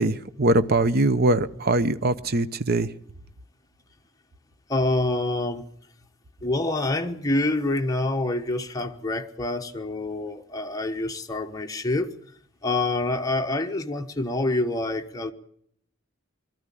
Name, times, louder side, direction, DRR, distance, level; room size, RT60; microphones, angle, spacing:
voice 1, 0.0-2.9, right 2 dB, 45° right, 0.8 m, -22 dB
voice 2, 4.7-5.6 6.4-12.1 12.6-15.3, left 2 dB, 15° left, 1.2 m, -26 dB
21.0 x 13.5 x 9.9 m
head